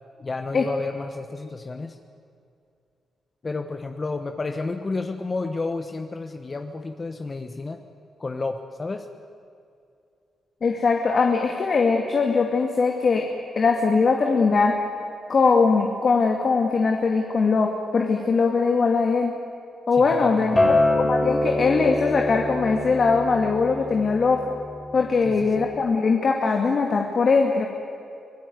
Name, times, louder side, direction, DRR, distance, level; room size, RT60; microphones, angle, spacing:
voice 1, 0.2-2.0 3.4-7.8 8.2-9.1 20.2-20.6 25.2-25.7, left 3 dB, 30° left, 7 dB, 1.2 m, -31 dB
voice 2, 10.6-13.2 13.6-14.7 15.3-19.3 19.9-24.4 24.9-27.7, left 4 dB, 50° left, 2 dB, 2.2 m, -21 dB
Acoustic guitar, 20.6-25.8, left 2 dB, 15° left, 5.6 m, -25 dB
25.0 x 18.0 x 9.4 m, 2.4 s
cardioid pair, 100°, 0 cm